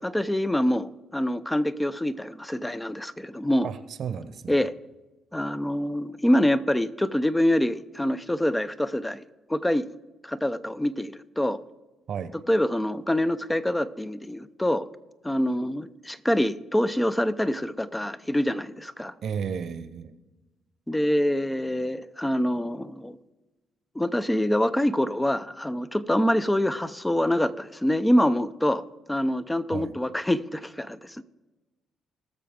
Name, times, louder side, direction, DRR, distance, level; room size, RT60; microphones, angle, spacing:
voice 1, 0.0-3.7 4.5-4.7 5.3-9.2 9.5-9.9 10.2-11.6 12.5-14.9 15.2-19.1 20.9-23.2 24.0-28.8 29.1-31.2, left 1 dB, 10° left, 13 dB, 0.6 m, -25 dB
voice 2, 3.6-4.6 12.1-12.3 19.2-20.1 29.7-29.9, right 7 dB, 65° right, 12 dB, 0.9 m, -33 dB
20.0 x 6.8 x 3.7 m, 1.1 s
cardioid pair, 90°, 0 cm